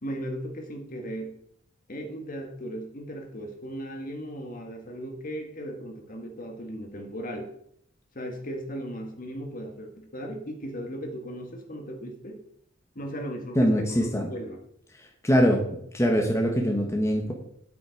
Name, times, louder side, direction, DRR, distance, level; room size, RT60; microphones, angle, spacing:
voice 1, 0.0-1.3 1.9-7.5 8.1-12.4 13.0-14.6, equal, 40° left, 3 dB, 1.7 m, -37 dB
voice 2, 13.5-14.3 15.2-15.6 15.9-17.3, equal, 15° left, 1 dB, 1.3 m, -22 dB
9.8 x 8.5 x 4.7 m, 0.71 s
head